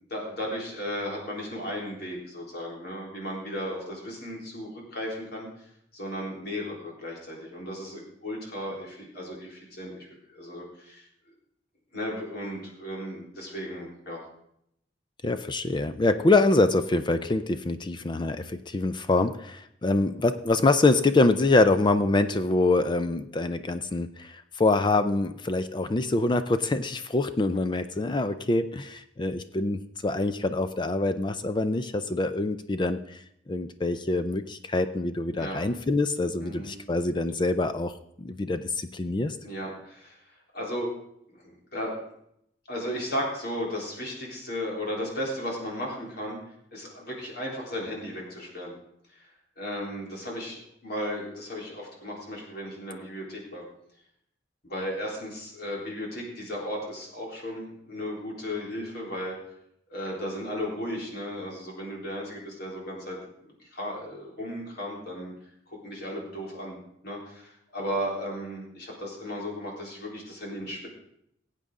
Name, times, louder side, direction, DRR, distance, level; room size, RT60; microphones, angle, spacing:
voice 1, 0.1-5.5 5.9-11.1 11.9-14.2 35.4-35.6 36.4-36.7 39.4-40.2 40.5-40.9 41.3-42.1 42.7-46.4 46.7-48.7 49.1-49.3 49.6-53.7 54.6-59.4 59.9-63.2 63.6-65.3 65.7-66.8 67.0-70.9, equal, 60° left, -2 dB, 3.7 m, -35 dB
voice 2, 15.2-33.2 33.5-39.4, left 2 dB, 25° left, 10 dB, 0.4 m, -25 dB
17.5 x 8.2 x 3.7 m, 0.74 s
head